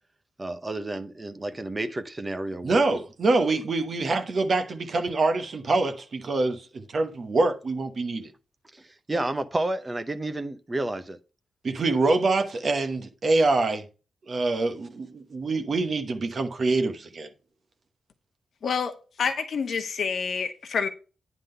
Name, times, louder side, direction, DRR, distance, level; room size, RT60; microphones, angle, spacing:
voice 1, 0.4-3.0 8.7-11.2, right 2 dB, 15° right, 0.7 m, -31 dB
voice 2, 2.6-8.3 11.6-13.8 14.3-17.3, right 3 dB, 40° right, 1.1 m, -25 dB
voice 3, 18.6-20.9, left 6 dB, 55° left, 1.3 m, -28 dB
9.8 x 3.7 x 6.7 m
wide cardioid pair, 165°, 0 cm